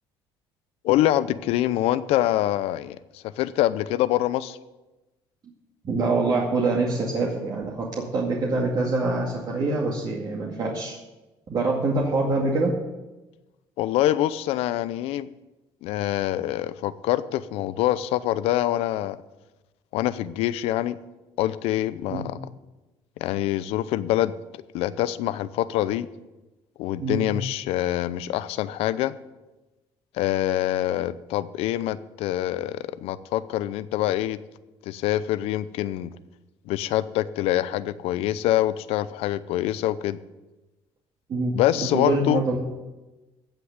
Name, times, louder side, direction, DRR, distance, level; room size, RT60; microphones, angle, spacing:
voice 1, 0.8-4.6 13.8-15.3 15.8-19.2 19.9-21.0 21.4-22.4 23.2-24.3 24.7-26.1 26.8-29.1 30.1-34.4 34.8-36.2 36.7-40.2 41.5-42.4, left 13 dB, 80° left, 16 dB, 0.6 m, -25 dB
voice 2, 5.8-11.0 11.5-12.7 22.1-22.3 27.0-27.2 41.3-42.6, right 3 dB, 45° right, -2 dB, 2.2 m, -25 dB
15.5 x 6.1 x 8.2 m, 1.1 s
cardioid pair, 120°, 10 cm